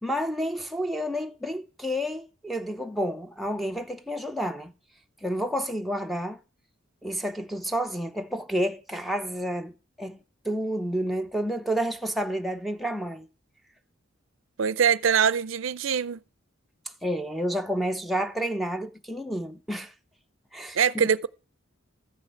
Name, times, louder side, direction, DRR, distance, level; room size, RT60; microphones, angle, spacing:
voice 1, 0.0-4.7 5.2-6.4 7.0-9.7 10.0-10.2 10.4-13.3 17.0-19.9 20.5-21.1, equal, ahead, 0.7 m, -30 dB
voice 2, 14.6-16.2 20.7-21.3, right 7 dB, 75° right, 0.5 m, -23 dB
14.0 x 5.9 x 7.8 m
head